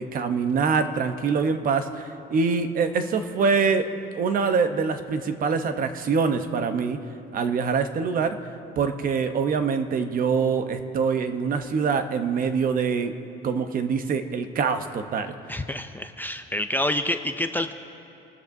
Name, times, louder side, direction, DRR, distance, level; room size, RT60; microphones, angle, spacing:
voice 1, 0.0-3.9 4.1-7.0 7.3-8.4 8.8-13.1 13.4-15.3, right 5 dB, 45° right, 8 dB, 0.9 m, -24 dB
voice 2, 15.5-17.7, left 1 dB, 10° left, 7 dB, 0.4 m, -27 dB
27.0 x 13.5 x 2.7 m, 3.0 s
cardioid pair, 135°, 20 cm